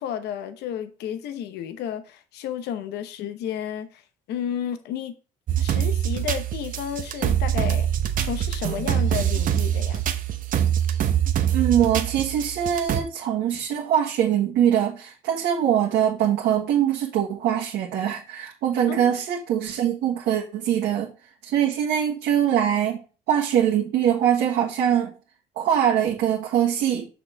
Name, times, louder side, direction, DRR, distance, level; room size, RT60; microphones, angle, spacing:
voice 1, 0.0-4.0 4.3-5.1 5.6-7.9 8.2-10.0 18.9-19.2, left 9 dB, 80° left, 0.9 m, -32 dB
sound 1, 5.5-13.0, right 10 dB, 55° right, 0.9 m, -24 dB
voice 2, 11.5-21.1 21.4-23.0 23.3-25.1 25.6-27.1, right 9 dB, 80° right, 1.6 m, -23 dB
6.4 x 6.1 x 3.4 m
cardioid pair, 110°, 17 cm